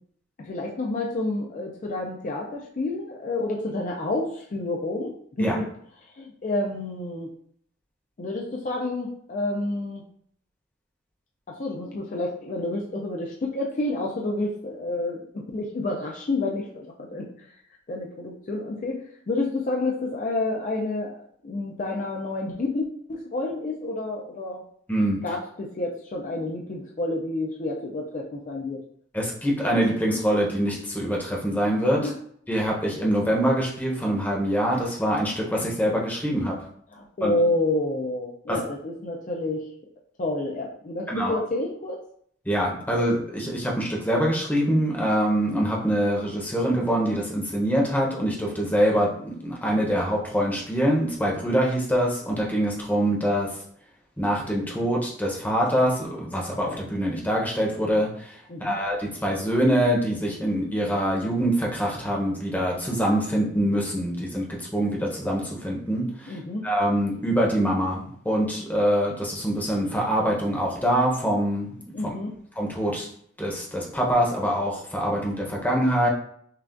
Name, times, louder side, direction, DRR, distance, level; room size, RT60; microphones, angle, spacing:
voice 1, 0.4-5.7 6.2-7.3 8.2-10.0 11.5-17.5 17.9-24.6 25.2-28.8 32.0-32.2 36.9-39.7 40.2-42.0 58.5-58.8 66.3-66.6 71.9-72.3, left 2 dB, 40° left, -1 dB, 0.4 m, -29 dB
voice 2, 24.9-25.2 29.1-32.0 32.5-36.6 37.2-37.3 38.5-38.6 41.1-41.4 42.5-53.5 54.2-58.3 58.6-64.4 64.7-66.4 66.6-71.8 72.6-73.1 73.4-76.1, equal, 10° left, -2 dB, 0.8 m, -24 dB
5.6 x 2.3 x 2.5 m, 0.64 s
head